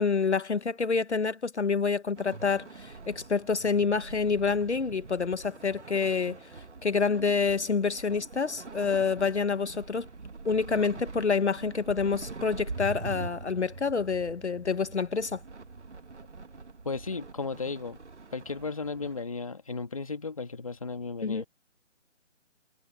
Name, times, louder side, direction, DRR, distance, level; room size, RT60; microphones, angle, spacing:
voice 1, 0.0-10.1 10.4-15.4 21.2-21.4, left 5 dB, 65° left, 1.1 m, -28 dB
sound 1, 2.2-19.2, right 4 dB, 65° right, 2.2 m, -43 dB
voice 2, 16.8-18.0 18.3-21.5, left 4 dB, 30° left, 1.7 m, -35 dB
figure-of-eight pair, 175°, 37 cm